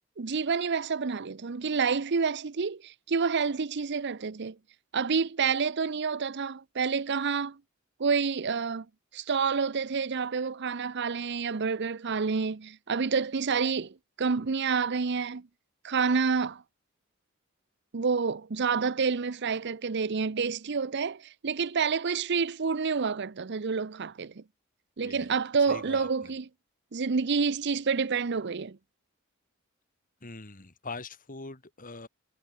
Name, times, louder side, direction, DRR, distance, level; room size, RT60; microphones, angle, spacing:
voice 1, 0.2-4.5 4.9-7.6 8.0-8.9 9.1-15.4 15.8-16.6 17.9-24.4 25.0-26.4 26.9-28.8, right 5 dB, 55° right, 0.7 m, -28 dB
voice 2, 25.7-26.3 30.2-32.1, left 3 dB, 40° left, 3.3 m, -43 dB
head